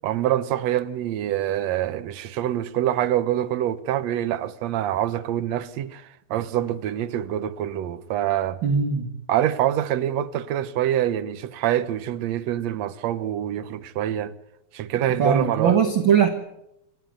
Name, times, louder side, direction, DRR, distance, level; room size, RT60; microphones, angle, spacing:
voice 1, 0.0-8.6 9.3-14.3 14.7-15.8, right 12 dB, 65° right, 1.8 m, -25 dB
voice 2, 8.6-9.1 15.2-16.3, right 7 dB, 45° right, 1.7 m, -20 dB
28.0 x 13.0 x 9.3 m
omnidirectional pair, 4.1 m